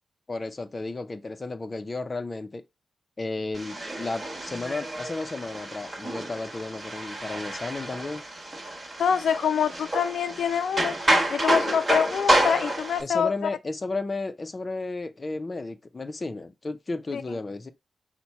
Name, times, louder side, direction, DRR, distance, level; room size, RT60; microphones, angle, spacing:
voice 1, 0.3-2.6 3.2-8.2 13.0-17.7, left 3 dB, 25° left, 0.5 m, -33 dB
sound 1, 3.5-13.0, right 1 dB, 20° right, 1.2 m, -28 dB
voice 2, 9.0-11.0 11.3-13.3 17.1-17.2, left 7 dB, 90° left, 0.3 m, -25 dB
5.8 x 2.2 x 4.1 m
wide cardioid pair, 145°, 0 cm